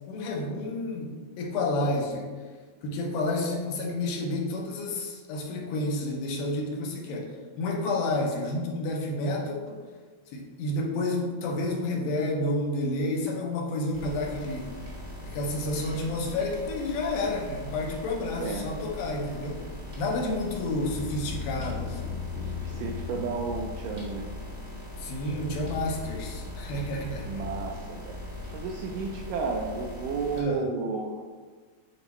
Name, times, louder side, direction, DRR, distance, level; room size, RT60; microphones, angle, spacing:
voice 1, 0.1-2.3 2.8-9.8 10.3-14.7 15.2-19.6 20.0-22.1 25.0-27.3 30.4-30.7, left 2 dB, 75° left, 0 dB, 2.5 m, -30 dB
sound 1, 13.9-30.4, left 2 dB, 45° right, 1.1 m, -38 dB
voice 2, 22.4-24.3 27.2-28.2 28.5-31.2, right 4 dB, 80° right, 1 dB, 1.9 m, -32 dB
9.7 x 4.2 x 3.0 m, 1.5 s
omnidirectional pair, 4.3 m